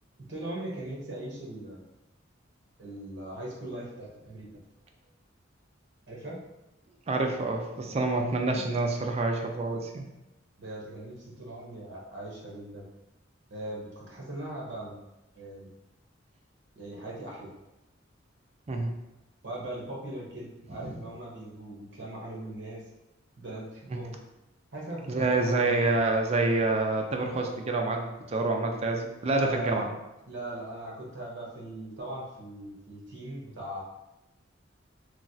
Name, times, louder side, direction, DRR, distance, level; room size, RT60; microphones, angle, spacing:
voice 1, 0.3-1.8 2.8-4.5 6.1-6.4 10.6-12.8 13.5-15.0 15.3-15.7 16.7-17.5 19.4-22.8 23.4-24.2 24.7-25.8 29.3-29.8 30.3-33.8, right 1 dB, 65° right, -3 dB, 0.9 m, -39 dB
voice 2, 7.1-10.1 18.7-18.9 20.7-21.0 23.9-24.0 25.1-29.9, right 2 dB, 35° right, 3 dB, 0.4 m, -27 dB
3.1 x 2.3 x 2.6 m, 0.94 s
head